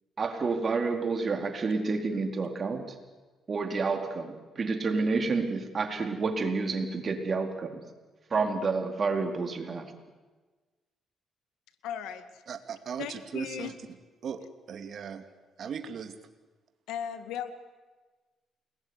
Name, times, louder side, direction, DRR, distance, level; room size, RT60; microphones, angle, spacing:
voice 1, 0.2-2.8 3.5-7.8 8.3-9.8, right 4 dB, 40° right, 5 dB, 4.3 m, -29 dB
voice 2, 11.8-12.4 13.0-13.7 16.9-17.5, left 9 dB, 90° left, 10 dB, 2.2 m, -37 dB
voice 3, 12.5-13.7 14.2-15.3 15.6-16.2, right 7 dB, 60° right, 8 dB, 2.5 m, -38 dB
29.0 x 21.0 x 9.9 m, 1.3 s
cardioid pair, 90°, 0 cm